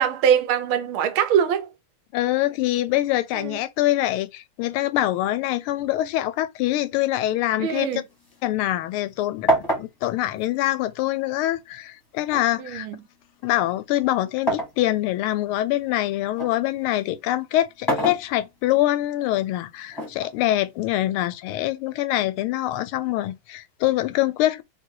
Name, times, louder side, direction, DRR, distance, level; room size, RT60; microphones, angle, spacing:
voice 1, 0.0-1.7 3.3-3.6 7.6-8.0 12.6-13.0, right 8 dB, 75° right, 1.5 m, -22 dB
voice 2, 2.1-8.0 8.4-9.5 9.8-12.9 13.4-24.6, left 15 dB, 85° left, 1.5 m, -24 dB
sound 1, 7.8-9.1 9.5-11.4 12.3-14.8 15.3-16.6 17.6-18.8 19.9-20.9, right 1 dB, 15° left, 1.0 m, -28 dB
3.7 x 2.7 x 4.5 m
omnidirectional pair, 2.3 m